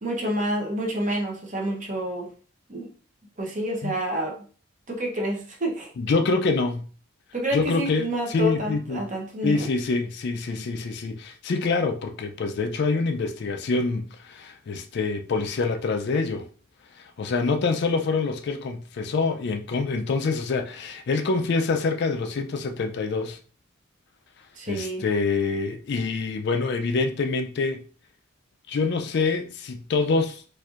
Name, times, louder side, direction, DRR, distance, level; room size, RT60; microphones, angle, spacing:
voice 1, 0.0-2.3 2.7-2.9 3.4-4.4 4.9-5.9 7.3-9.7 24.5-25.0, equal, 35° right, 0.8 m, -28 dB
voice 2, 6.0-6.9 7.5-9.1 9.4-16.5 17.0-23.4 24.7-27.8 28.7-30.6, left 4 dB, 50° left, 0.4 m, -26 dB
4.3 x 2.6 x 2.4 m
head